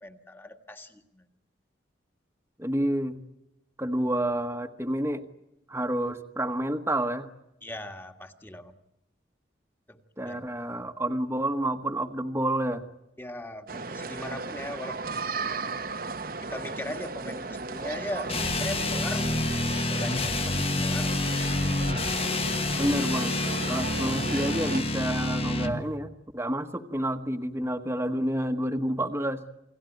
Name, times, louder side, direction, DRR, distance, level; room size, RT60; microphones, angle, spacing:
voice 1, 0.0-1.3 7.6-8.7 9.9-10.4 13.2-15.0 16.4-21.1, left 1 dB, 10° left, 6 dB, 1.8 m, -39 dB
voice 2, 2.6-3.2 3.8-5.2 5.7-7.3 10.2-12.8 22.7-23.3 23.7-29.4, right 1 dB, 15° right, 5 dB, 1.3 m, -29 dB
sound 1, 13.7-24.8, right 3 dB, 50° right, 1.0 m, -36 dB
sound 2, 17.7-23.2, left 2 dB, 70° left, 8.0 m, -50 dB
sound 3, 18.3-25.8, left 2 dB, 30° left, 1.4 m, -28 dB
29.0 x 19.5 x 9.2 m, 0.88 s
head